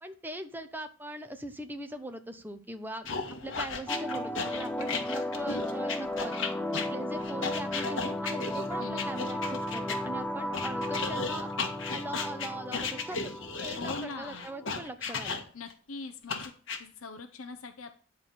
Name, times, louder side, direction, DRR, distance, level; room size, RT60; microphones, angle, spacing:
voice 1, 0.0-3.1 3.4-6.4 6.7-11.5 11.9-13.3 13.6-15.4, right 1 dB, 10° right, 8 dB, 0.9 m, -40 dB
sound 1, 3.1-10.0 10.5-15.7 16.3-16.8, left 5 dB, 60° left, 1.7 m, -35 dB
sound 2, 3.9-14.9, left 1 dB, 10° left, 0.5 m, -35 dB
voice 2, 8.8-9.1 13.7-14.5 15.5-16.5 16.8-17.9, left 3 dB, 85° left, 6 dB, 0.8 m, -42 dB
10.0 x 4.9 x 7.4 m, 0.42 s
head